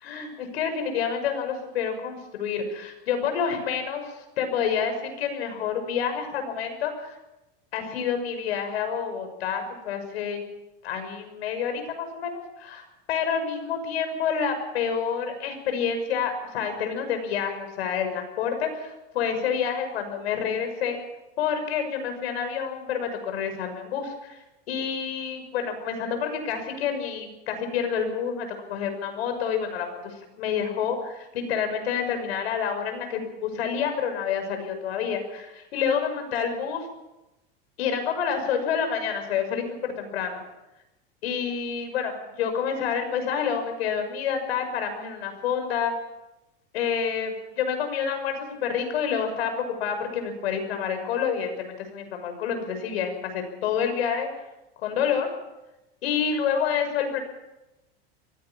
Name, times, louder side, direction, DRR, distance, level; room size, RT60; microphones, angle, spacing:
voice 1, 0.0-7.2 7.7-10.4 10.8-12.8 13.1-21.0 21.4-24.4 24.7-36.9 37.8-40.4 41.2-45.9 46.7-54.3 54.8-55.3 56.0-57.2, left 7 dB, 85° left, 6 dB, 6.2 m, -28 dB
23.5 x 16.5 x 7.3 m, 0.99 s
supercardioid pair, 150°, 31 cm